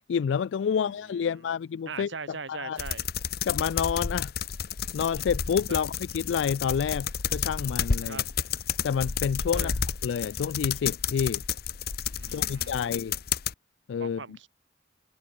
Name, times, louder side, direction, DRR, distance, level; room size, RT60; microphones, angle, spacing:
voice 1, 0.1-2.1 2.5-2.8 3.5-4.3 4.9-8.2 8.8-9.7 10.0-11.4 12.3-13.1 13.9-14.2, left 7 dB, 75° left, 0.3 m, -28 dB
voice 2, 0.7-1.5 1.9-3.0 5.7-5.8 8.0-8.3 9.5-9.8 12.2-13.0 14.0-14.5, right 4 dB, 80° right, 1.6 m, -41 dB
sound 1, 2.8-13.5, left 7 dB, 55° left, 0.7 m, -31 dB
head